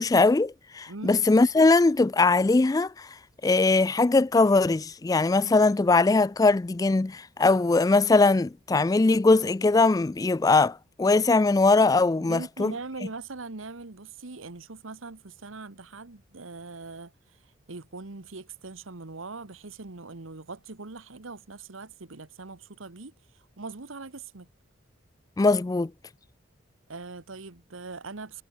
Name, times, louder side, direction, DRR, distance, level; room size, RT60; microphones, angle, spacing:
voice 1, 0.0-3.2 3.4-12.7 25.4-25.9, left 3 dB, 20° left, 0.3 m, -21 dB
voice 2, 12.2-24.5 26.9-28.4, right 3 dB, 90° right, 1.4 m, -41 dB
head